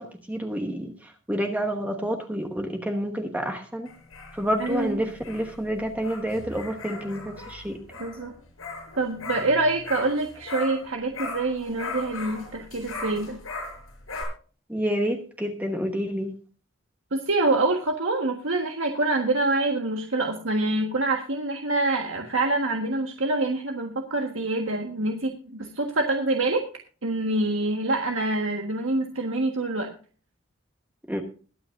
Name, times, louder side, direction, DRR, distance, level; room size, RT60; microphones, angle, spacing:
voice 1, 0.0-3.9 4.3-7.8 14.7-16.3 31.1-31.2, equal, 10° right, 3 dB, 1.1 m, -29 dB
sound 1, 3.9-10.9 11.1-14.2, left 3 dB, 90° left, 6.2 m, -38 dB
voice 2, 4.6-5.0 8.0-8.3 9.0-13.4 17.1-26.6 27.0-29.9, right 2 dB, 75° right, 2 dB, 1.5 m, -26 dB
22.0 x 8.8 x 2.6 m, 0.39 s
head